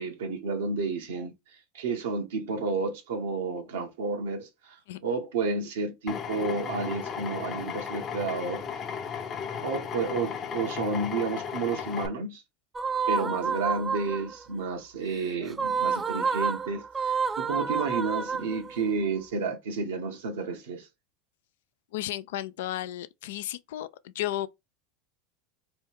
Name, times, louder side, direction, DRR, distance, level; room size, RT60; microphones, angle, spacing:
voice 1, 0.0-1.3 1.7-8.7 9.6-12.4 13.1-20.9, right 4 dB, 80° right, 0.9 m, -31 dB
Drill, 6.1-12.1, left 7 dB, 40° left, 0.6 m, -35 dB
sound 1, 12.8-14.4 15.5-18.9, right 5 dB, 20° right, 0.4 m, -29 dB
voice 2, 21.9-24.5, left 14 dB, 75° left, 0.3 m, -33 dB
3.0 x 2.2 x 3.3 m
hypercardioid pair, 95°, 0 cm